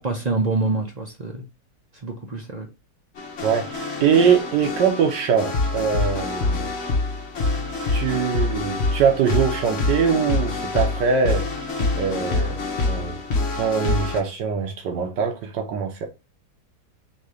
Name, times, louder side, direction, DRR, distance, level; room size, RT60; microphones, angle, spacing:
voice 1, 0.0-1.4 2.0-2.7, right 3 dB, 50° right, 0.4 m, -26 dB
sound 1, 3.2-14.2, left 3 dB, 45° left, 1.1 m, -26 dB
voice 2, 3.4-6.7 7.9-11.5 12.0-12.6 12.8-13.2 13.6-16.1, right 6 dB, 85° right, 1.4 m, -22 dB
3.8 x 2.8 x 4.7 m
omnidirectional pair, 1.8 m